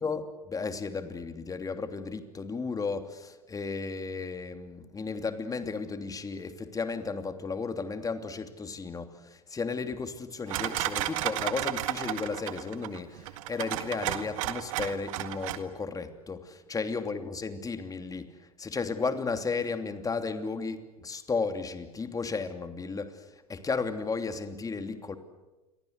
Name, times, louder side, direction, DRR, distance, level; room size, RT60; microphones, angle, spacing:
voice 1, 0.0-18.3 18.6-23.2 23.5-25.2, left 4 dB, 20° left, 8 dB, 2.9 m, -34 dB
sound 1, 10.5-15.6, right 15 dB, 65° right, 2.0 m, -33 dB
28.5 x 24.0 x 8.2 m, 1.1 s
hypercardioid pair, 85°, 19 cm